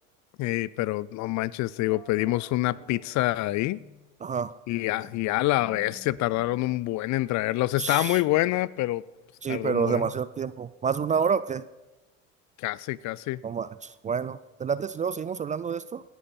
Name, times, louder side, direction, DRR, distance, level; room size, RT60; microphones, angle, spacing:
voice 1, 0.4-3.8 4.7-9.0 9.5-10.0 12.6-13.4, left 17 dB, 50° left, 0.5 m, -26 dB
sound 1, 1.8-4.1 4.9-8.2, right 1 dB, 10° left, 5.6 m, -53 dB
voice 2, 4.2-4.5 7.8-8.2 9.4-11.6 13.4-16.0, right 6 dB, 20° right, 0.3 m, -28 dB
19.5 x 10.5 x 4.2 m
hypercardioid pair, 75°, 39 cm